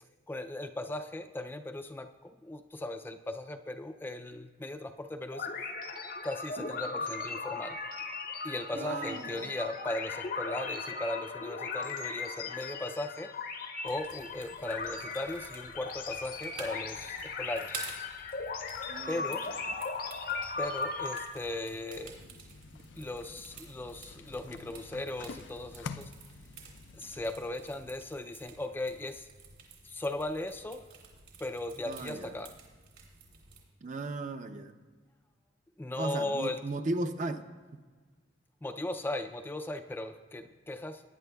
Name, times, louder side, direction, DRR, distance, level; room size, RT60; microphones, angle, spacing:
voice 1, 0.3-5.5 6.2-7.8 8.4-13.3 13.8-17.7 19.1-19.5 20.6-22.2 23.0-26.1 26.9-29.3 29.8-30.8 31.4-32.5 35.8-36.6 38.6-41.0, left 1 dB, 10° left, 7 dB, 0.3 m, -37 dB
sound 1, 5.3-21.3, left 4 dB, 50° left, 0.7 m, -38 dB
voice 2, 8.7-9.5 18.9-19.2 31.9-32.4 33.8-34.8 36.0-37.5, right 2 dB, 45° right, 8 dB, 0.5 m, -36 dB
sound 2, 13.9-33.6, right 5 dB, 65° right, 2.7 m, -51 dB
sound 3, 21.9-28.4, left 5 dB, 80° left, 0.4 m, -48 dB
18.5 x 9.6 x 2.3 m, 1.4 s
head